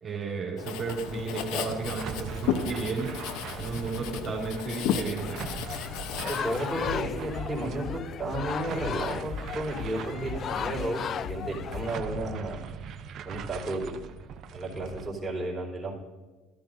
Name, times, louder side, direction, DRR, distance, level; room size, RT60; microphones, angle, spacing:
voice 1, 0.0-3.1 3.6-5.4, right 4 dB, 40° right, -4 dB, 2.7 m, -33 dB
Writing, 0.6-7.0, left 8 dB, 70° left, 0.8 m, -34 dB
sound 1, 1.1-15.1, right 7 dB, 55° right, 0.7 m, -41 dB
sound 2, 5.2-12.0, left 9 dB, 50° left, 0.3 m, -36 dB
voice 2, 6.3-12.6 13.2-14.1 14.5-16.0, right 1 dB, 15° right, -3 dB, 3.9 m, -33 dB
13.5 x 13.0 x 2.6 m, 1.3 s
hypercardioid pair, 75°, 0 cm